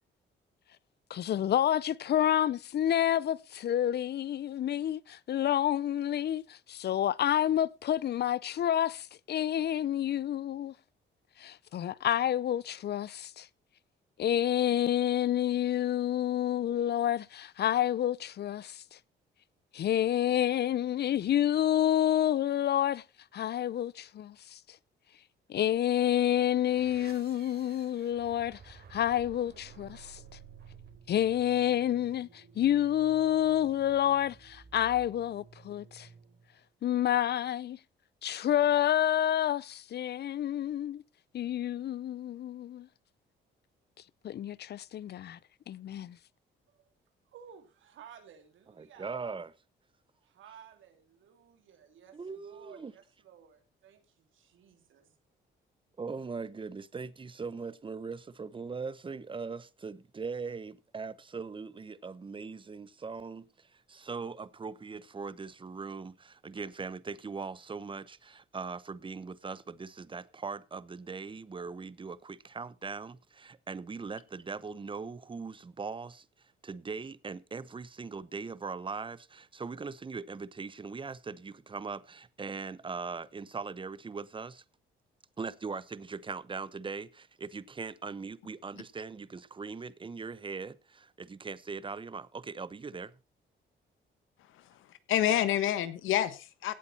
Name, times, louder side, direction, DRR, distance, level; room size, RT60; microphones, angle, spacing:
voice 1, 1.1-10.7 11.4-13.5 14.2-18.8 19.7-23.0 23.3-24.6 25.5-30.2 31.1-36.1 36.8-37.8 38.2-41.0 41.3-42.9 44.2-45.4 45.7-46.2, left 11 dB, 55° left, 0.6 m, -29 dB
sound 1, 25.9-36.6, right 6 dB, 55° right, 3.6 m, -54 dB
voice 2, 47.3-49.2 50.2-55.2, right 8 dB, 75° right, 3.1 m, -55 dB
voice 3, 48.8-49.5 52.1-52.9 56.0-76.3 76.6-84.6 85.4-93.1, right 4 dB, 25° right, 0.9 m, -40 dB
voice 4, 94.5-96.7, left 12 dB, 85° left, 1.4 m, -29 dB
17.0 x 8.2 x 4.3 m
cardioid pair, 90°, 20 cm